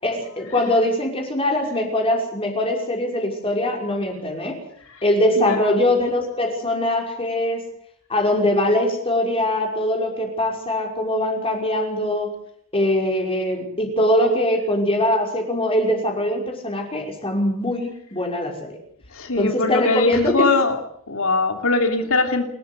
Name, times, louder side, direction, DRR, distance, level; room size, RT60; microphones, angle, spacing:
voice 1, 0.0-4.6 5.0-7.6 8.1-12.3 12.7-18.8 19.4-20.5, left 1 dB, 25° left, 2 dB, 5.8 m, -22 dB
voice 2, 5.4-5.8 19.1-20.8 21.1-22.5, left 3 dB, 65° left, 6 dB, 3.1 m, -21 dB
29.0 x 14.5 x 8.2 m, 0.66 s
head